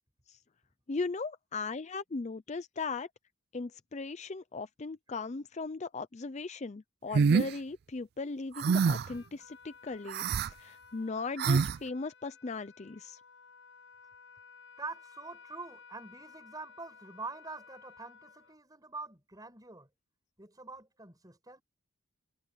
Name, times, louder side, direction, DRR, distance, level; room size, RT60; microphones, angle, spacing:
voice 1, 0.9-3.1 3.5-10.2 10.6-13.2, left 4 dB, 35° left, 0.5 m, -38 dB
sound 1, 7.1-7.5 8.6-9.1 10.1-10.5 11.4-11.8, right 5 dB, 50° right, 0.3 m, -26 dB
Trumpet, 9.0-18.6, left 5 dB, 60° left, 7.6 m, -56 dB
voice 2, 14.8-19.9 20.4-21.6, right 3 dB, 20° right, 5.6 m, -45 dB
head